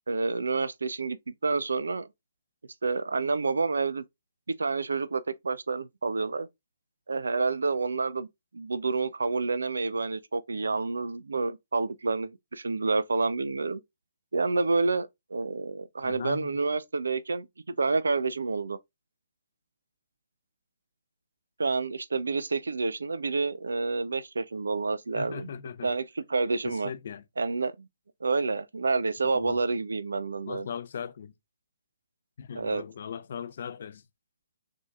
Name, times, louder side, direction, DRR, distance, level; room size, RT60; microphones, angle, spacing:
voice 1, 0.1-1.2 1.4-2.1 2.8-4.0 4.6-6.5 7.1-8.3 8.5-13.8 14.3-18.8 21.6-25.5 25.8-26.9 27.4-27.9 28.2-30.7 32.5-32.8, right 3 dB, 80° right, 0.5 m, -29 dB
voice 2, 16.0-16.5 25.1-25.9 26.6-27.2 29.3-29.6 30.5-31.3 32.4-34.0, left 7 dB, 60° left, 0.7 m, -38 dB
6.1 x 2.8 x 2.4 m
figure-of-eight pair, 135°, 0 cm